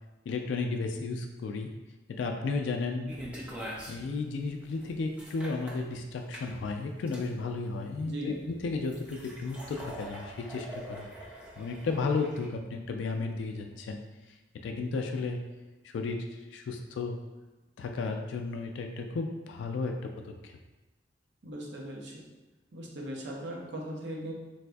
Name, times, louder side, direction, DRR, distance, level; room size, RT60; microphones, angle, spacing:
voice 1, 0.3-1.7 2.1-3.1 3.9-11.1 11.6-14.0 14.6-15.5 15.8-16.2 16.5-17.2 17.8-20.5, left 3 dB, 75° left, 4 dB, 0.3 m, -33 dB
sound 1, 3.1-12.5, equal, 5° right, 0.5 m, -44 dB
voice 2, 8.0-8.4 21.4-22.2 22.7-24.3, right 1 dB, 65° right, -1 dB, 0.7 m, -39 dB
3.9 x 2.5 x 2.2 m, 1.1 s
head